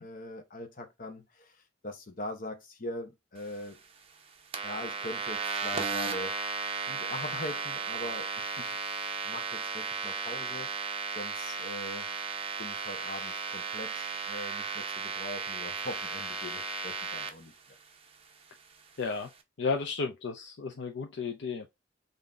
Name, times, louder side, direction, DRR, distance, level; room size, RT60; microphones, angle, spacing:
voice 1, 0.0-3.8 4.6-6.4 6.9-8.6 9.2-10.8 11.1-12.1 12.6-17.5, left 1 dB, 45° left, 0.8 m, -42 dB
sound 1, 4.5-17.3, right 4 dB, 30° right, 0.6 m, -35 dB
voice 2, 19.0-19.3 19.6-21.7, left 4 dB, 65° left, 0.5 m, -33 dB
3.8 x 2.7 x 3.4 m
head